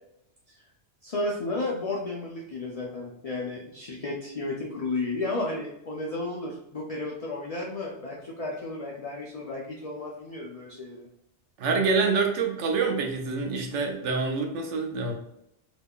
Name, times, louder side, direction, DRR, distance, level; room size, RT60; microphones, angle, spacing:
voice 1, 1.0-11.1, left 2 dB, 45° left, -2 dB, 0.5 m, -33 dB
voice 2, 11.6-15.1, right 4 dB, 90° right, 3 dB, 1.0 m, -26 dB
3.5 x 3.0 x 2.3 m, 0.79 s
omnidirectional pair, 1.2 m